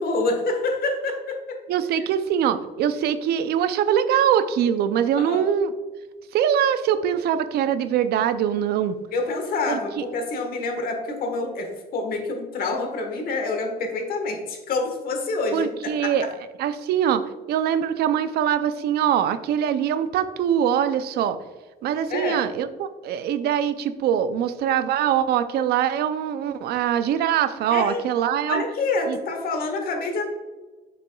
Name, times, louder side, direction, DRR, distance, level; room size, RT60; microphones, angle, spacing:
voice 1, 0.0-1.6 2.0-2.1 5.2-5.5 9.1-16.3 22.1-22.5 27.7-28.0 28.5-30.3, left 3 dB, 60° left, 4 dB, 1.4 m, -27 dB
voice 2, 1.7-5.7 6.3-9.0 9.7-10.1 15.5-16.3 16.6-21.4 21.8-28.6 29.1-29.2, right 9 dB, 70° right, 12 dB, 0.5 m, -23 dB
7.1 x 5.8 x 2.3 m, 1.3 s
cardioid pair, 110°, 17 cm